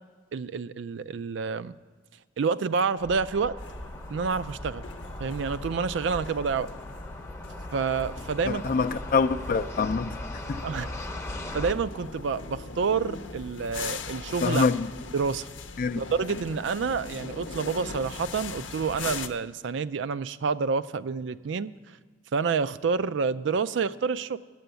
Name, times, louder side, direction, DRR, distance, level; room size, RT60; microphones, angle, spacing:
voice 1, 0.3-1.7 2.4-3.5 4.1-4.8 5.2-6.7 7.7-8.6 10.6-10.9 11.5-14.6 15.1-15.5 16.0-21.7 22.3-24.4, right 5 dB, 70° right, 0.4 m, -28 dB
sound 1, 3.0-11.7, left 1 dB, 15° left, 0.7 m, -39 dB
sound 2, 3.6-19.3, left 4 dB, 85° left, 0.7 m, -40 dB
voice 2, 8.5-10.1 10.5-10.6 14.4-14.9 15.8-16.0, left 4 dB, 45° left, 0.4 m, -25 dB
9.1 x 7.7 x 8.1 m
head